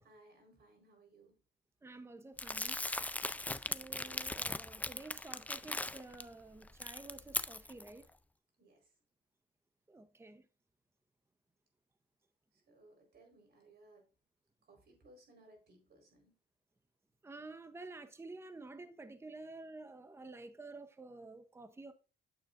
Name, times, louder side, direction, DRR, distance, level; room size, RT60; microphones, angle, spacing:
voice 1, 0.0-1.4 8.6-8.9 12.5-14.1 14.7-16.3, right 2 dB, 55° right, 4.3 m, -63 dB
voice 2, 1.8-2.8 3.6-8.0 9.9-10.4 17.2-21.9, right 3 dB, 15° right, 0.8 m, -50 dB
Crumpling crinkling, 2.4-6.2 6.6-7.9, left 2 dB, 10° left, 0.3 m, -39 dB
9.2 x 7.3 x 2.5 m
cardioid pair, 90°, 20 cm